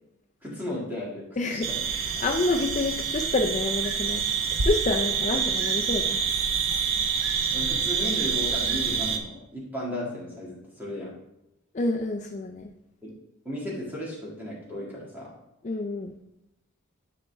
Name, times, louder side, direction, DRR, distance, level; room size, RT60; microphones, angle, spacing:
voice 1, 0.4-1.8 5.3-5.4 7.5-11.1 13.0-13.1 13.4-15.3, left 1 dB, 10° right, -6 dB, 2.1 m, -35 dB
voice 2, 1.4-4.3 4.6-6.2 11.7-12.7 15.6-16.2, left 2 dB, 30° left, 2 dB, 0.4 m, -28 dB
sound 1, 1.6-9.2, right 6 dB, 60° right, 0.7 m, -27 dB
10.0 x 4.2 x 3.5 m, 0.87 s
head